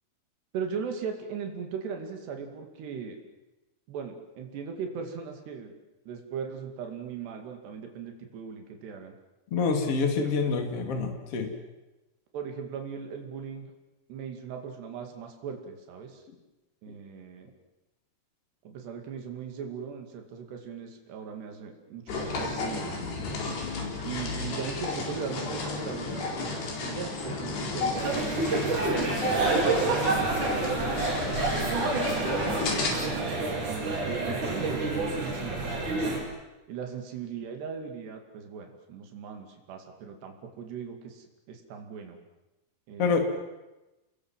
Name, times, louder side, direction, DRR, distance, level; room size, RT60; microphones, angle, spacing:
voice 1, 0.5-3.2 3.9-5.7 6.1-9.2 10.2-10.4 12.3-13.7 14.1-16.2 16.8-17.5 18.6-23.1 24.0-30.9 31.8-36.1 36.7-42.2 42.9-43.2, right 6 dB, 85° right, 4 dB, 4.7 m, -39 dB
voice 2, 9.5-11.5 43.0-43.2, left 5 dB, 40° left, 4 dB, 3.4 m, -26 dB
sound 1, 22.1-32.9, left 3 dB, 80° left, 6.4 m, -33 dB
sound 2, 28.0-36.2, right 3 dB, 50° right, 6.2 m, -28 dB
29.0 x 21.5 x 7.5 m, 1.0 s
omnidirectional pair, 4.7 m